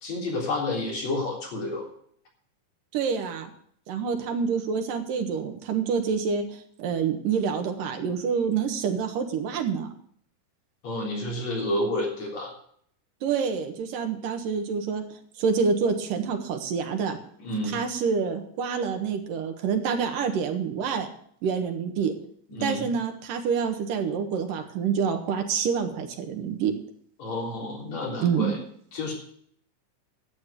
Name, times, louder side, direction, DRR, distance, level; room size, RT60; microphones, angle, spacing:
voice 1, 0.0-1.9 10.8-12.5 17.4-17.8 22.5-22.9 27.2-28.6 28.9-29.1, left 1 dB, 55° left, -1 dB, 4.8 m, -30 dB
voice 2, 2.9-3.5 3.9-6.4 6.8-9.9 13.2-15.0 15.4-17.2 17.7-21.1 21.4-22.1 22.6-26.7 28.2-28.5, right 6 dB, 90° right, 5 dB, 3.1 m, -27 dB
11.5 x 7.6 x 8.1 m, 0.62 s
omnidirectional pair, 3.8 m